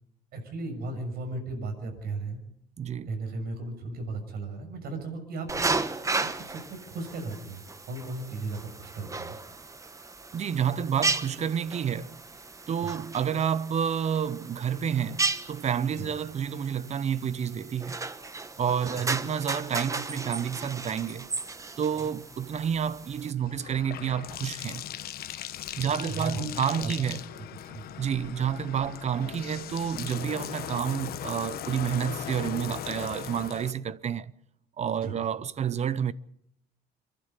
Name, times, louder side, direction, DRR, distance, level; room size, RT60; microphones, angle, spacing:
voice 1, 0.3-2.4 3.1-5.7 5.9-9.4 12.8-12.9 15.9-16.1 18.8-19.0 25.8-26.5 26.8-27.8 35.0-35.1, right 3 dB, 65° right, 6.6 m, -36 dB
voice 2, 2.8-3.1 10.3-12.2 12.7-18.0 18.6-21.3 21.8-24.8 25.8-27.2 28.0-34.3 34.8-36.1, right 8 dB, 40° right, 0.8 m, -29 dB
sound 1, 5.5-23.3, right 3 dB, 20° right, 1.2 m, -35 dB
Bathtub (filling or washing), 22.4-33.7, left 11 dB, 65° left, 1.2 m, -39 dB
27.5 x 11.5 x 8.3 m
cardioid pair, 110°, 17 cm